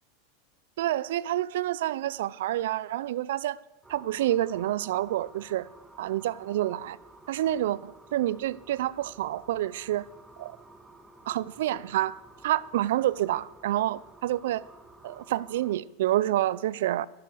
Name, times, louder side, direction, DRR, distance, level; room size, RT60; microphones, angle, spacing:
voice 1, 0.8-3.6 3.9-5.7 6.0-7.0 7.3-10.0 10.4-10.5 11.3-14.7 15.0-17.1, right 13 dB, 75° right, 0.4 m, -28 dB
sound 1, 3.8-15.8, right 2 dB, 10° right, 1.3 m, -53 dB
12.0 x 9.7 x 6.4 m
hypercardioid pair, 115°, 0 cm